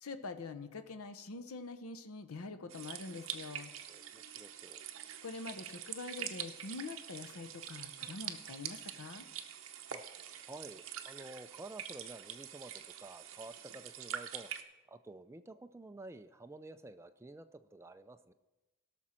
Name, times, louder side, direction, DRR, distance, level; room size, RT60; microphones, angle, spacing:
voice 1, 0.0-3.7 5.2-9.3, left 3 dB, 80° left, 10 dB, 0.7 m, -45 dB
sound 1, 2.7-14.6, right 9 dB, 65° right, 0.7 m, -45 dB
voice 2, 3.9-4.8 9.9-10.0 10.5-14.5 14.9-18.3, right 2 dB, 10° right, 9 dB, 0.3 m, -51 dB
17.0 x 6.1 x 4.4 m, 1.1 s
head